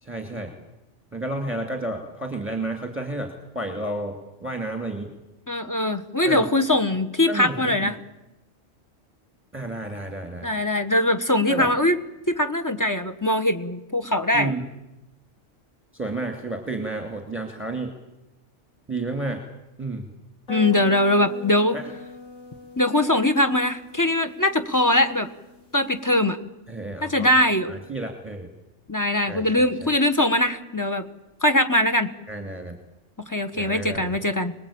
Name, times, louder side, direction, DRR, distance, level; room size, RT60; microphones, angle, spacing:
voice 1, 0.0-0.5 1.1-5.1 6.2-6.4 7.3-7.9 9.5-10.5 11.5-11.7 14.3-14.7 15.9-17.9 18.9-19.4 19.8-20.1 21.7-21.8 26.7-27.4 27.7-28.5 29.3-29.9 32.3-32.8 33.5-34.2, right 2 dB, 10° right, 4 dB, 2.7 m, -31 dB
voice 2, 5.5-8.0 10.4-12.0 12.3-14.5 20.5-21.8 22.8-25.3 25.7-26.4 27.0-27.7 28.9-31.1 31.4-32.1 33.2-34.5, left 1 dB, 15° left, 7 dB, 1.2 m, -21 dB
sound 1, 20.5-26.2, left 4 dB, 90° left, 5.7 m, -41 dB
26.0 x 20.0 x 8.7 m, 0.97 s
omnidirectional pair, 1.3 m